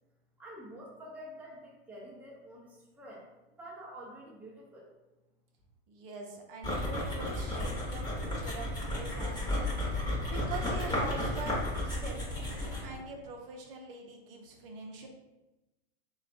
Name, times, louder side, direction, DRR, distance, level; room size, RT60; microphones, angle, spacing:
voice 1, 0.4-4.9, equal, 5° right, -5 dB, 0.6 m, -48 dB
voice 2, 5.9-9.7 10.3-15.1, right 3 dB, 60° right, 1 dB, 0.7 m, -44 dB
sound 1, 6.6-13.0, left 1 dB, 15° left, 1.0 m, -33 dB
3.3 x 2.3 x 2.4 m, 1.0 s
hypercardioid pair, 110°, 32 cm